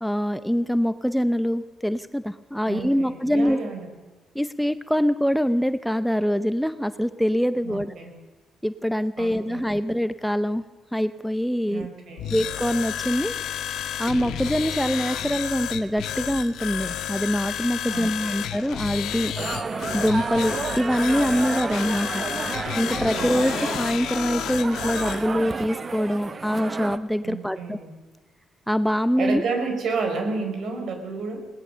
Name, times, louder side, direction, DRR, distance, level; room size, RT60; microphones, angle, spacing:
voice 1, 0.0-3.6 4.3-7.9 8.6-10.6 10.9-11.9 12.3-13.3 14.0-19.6 19.9-22.2 22.8-27.8 28.7-29.4, equal, ahead, 12 dB, 0.7 m, -24 dB
voice 2, 2.7-3.9 7.6-8.1 9.2-9.8 11.7-12.4 17.9-18.5 23.1-23.6 27.2-27.9 29.2-31.5, right 4 dB, 65° right, 5 dB, 4.7 m, -31 dB
sound 1, 12.2-25.2, left 10 dB, 85° left, 1.3 m, -31 dB
sound 2, 19.4-27.0, right 4 dB, 35° right, 1.1 m, -31 dB
21.0 x 18.5 x 6.8 m, 1.2 s
cardioid pair, 90°, 0 cm